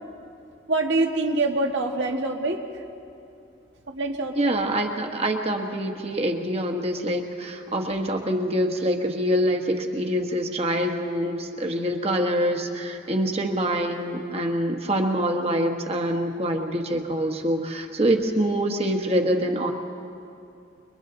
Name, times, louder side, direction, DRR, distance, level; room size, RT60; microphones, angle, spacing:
voice 1, 0.7-2.6 3.9-4.6, right 2 dB, 75° right, 2 dB, 1.9 m, -25 dB
voice 2, 4.3-19.7, equal, 35° right, 3 dB, 1.5 m, -25 dB
29.5 x 23.0 x 4.0 m, 2.7 s
head